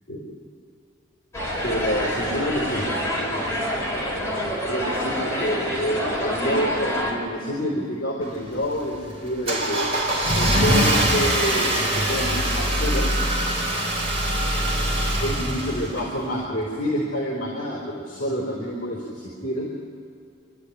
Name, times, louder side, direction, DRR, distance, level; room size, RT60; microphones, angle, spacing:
sound 1, 1.3-7.1, equal, 15° left, 4.6 m, -27 dB
voice 1, 1.6-2.8 4.7-9.9 10.3-13.1 15.2-19.7, equal, 45° left, -1 dB, 3.8 m, -28 dB
Car / Engine starting, 8.2-16.4, right 1 dB, 30° right, 3.8 m, -23 dB
26.5 x 11.5 x 9.9 m, 2.5 s
head